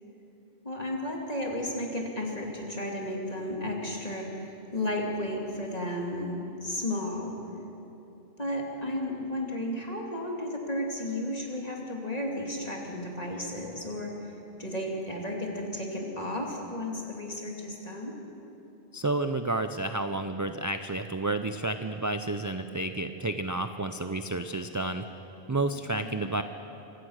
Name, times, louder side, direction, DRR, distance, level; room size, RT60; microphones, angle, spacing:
voice 1, 0.6-7.3 8.4-18.1 25.7-26.2, left 1 dB, 35° left, 0 dB, 2.7 m, -33 dB
voice 2, 18.9-25.1 25.5-26.4, right 2 dB, 25° right, 8 dB, 0.4 m, -30 dB
24.5 x 16.5 x 6.4 m, 3.0 s
omnidirectional pair, 1.1 m